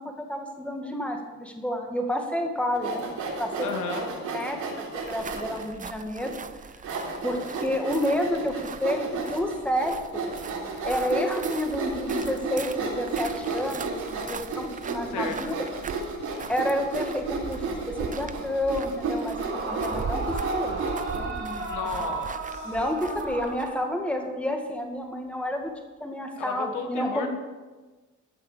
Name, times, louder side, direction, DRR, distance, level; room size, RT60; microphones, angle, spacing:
voice 1, 0.0-3.1 3.4-3.7 4.0-4.1 4.3-6.9 7.2-10.3 10.8-15.5 16.5-20.8 21.1-21.6 22.6-25.7 26.0-27.3, left 1 dB, 5° left, 3 dB, 2.0 m, -30 dB
Sawing, 2.7-5.6 6.2-6.3 6.8-21.2, right 4 dB, 75° right, 3.6 m, -33 dB
voice 2, 3.6-4.1 15.1-15.6 21.7-22.7 26.4-27.3, left 5 dB, 90° left, 5 dB, 1.6 m, -33 dB
sound 1, 5.0-23.8, right 6 dB, 25° right, 0.6 m, -40 dB
Yell / Screaming, 19.3-24.2, right 3 dB, 45° right, 4.0 m, -34 dB
14.0 x 6.6 x 6.7 m, 1.3 s
cardioid pair, 90°, 30 cm